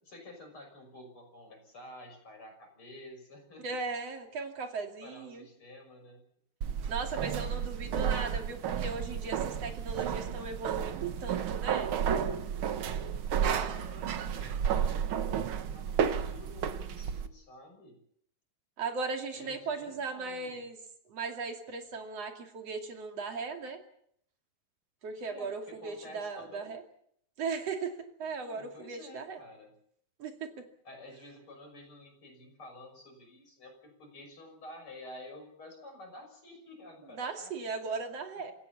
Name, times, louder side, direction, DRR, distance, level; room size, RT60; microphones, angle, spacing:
voice 1, 0.0-3.8 5.0-6.2 13.7-15.1 15.7-18.0 19.3-20.6 25.2-26.7 28.4-29.7 30.8-37.5, left 1 dB, 35° left, 4 dB, 6.7 m, -50 dB
voice 2, 3.6-5.5 6.9-11.9 18.8-20.8 21.1-23.8 25.0-26.8 27.4-29.4 30.2-30.6 37.2-38.5, right 4 dB, 45° right, 4 dB, 3.4 m, -37 dB
sound 1, 6.6-17.3, right 8 dB, 90° right, 1.1 m, -32 dB
27.5 x 16.5 x 7.2 m, 0.68 s
omnidirectional pair, 4.2 m